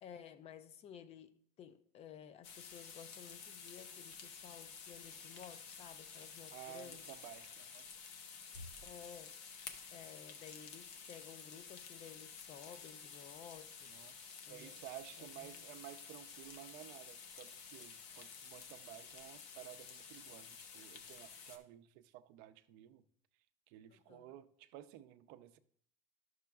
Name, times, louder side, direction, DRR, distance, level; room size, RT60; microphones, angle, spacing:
voice 1, 0.0-7.0 8.8-13.9 14.5-14.8 15.2-15.6 20.6-20.7 23.9-24.3, left 8 dB, 40° left, 0.5 m, -55 dB
sound 1, 2.4-21.6, left 6 dB, 80° left, 0.9 m, -52 dB
voice 2, 6.5-7.8 13.9-23.0 23.7-25.6, right 13 dB, 75° right, 0.5 m, -54 dB
11.5 x 6.2 x 2.3 m
cardioid pair, 145°, 16 cm